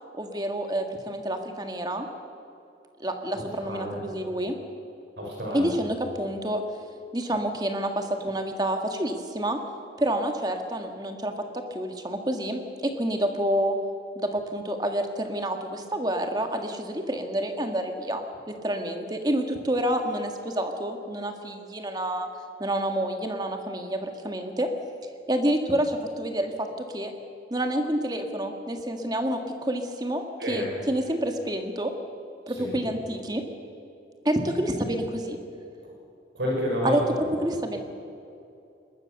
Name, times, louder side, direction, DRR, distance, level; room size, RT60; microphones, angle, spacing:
voice 1, 0.2-2.1 3.0-4.6 5.5-6.6 7.1-9.6 10.0-13.8 14.2-22.3 22.6-24.7 25.3-26.7 26.9-27.1 27.5-31.9 32.5-33.4 34.3-35.4 36.8-37.0 37.4-37.8, right 1 dB, 20° right, 5 dB, 1.8 m, -28 dB
voice 2, 3.3-4.0 5.2-5.7 30.4-30.7 32.5-32.8 36.3-37.0, equal, 85° right, -2 dB, 6.4 m, -30 dB
22.0 x 20.5 x 6.7 m, 2.7 s
head